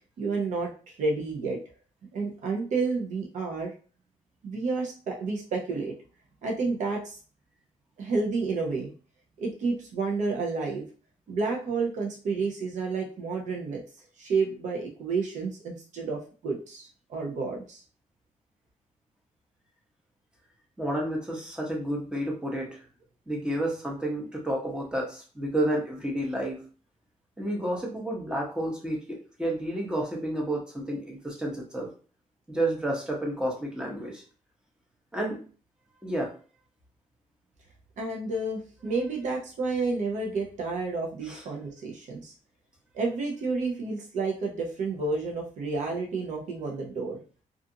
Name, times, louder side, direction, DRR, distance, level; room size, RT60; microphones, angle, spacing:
voice 1, 0.2-1.6 2.1-3.7 4.4-5.9 6.4-7.2 8.0-8.9 9.4-10.8 11.3-13.8 14.2-17.8 38.0-42.3 42.9-47.2, right 3 dB, 65° right, -1 dB, 0.6 m, -30 dB
voice 2, 20.8-22.8 23.3-26.6 27.4-31.9 32.5-34.2 35.1-35.4 36.0-36.3 41.2-41.4, right 1 dB, 5° right, -2 dB, 0.7 m, -30 dB
2.4 x 2.4 x 2.7 m, 0.39 s
wide cardioid pair, 170°, 13 cm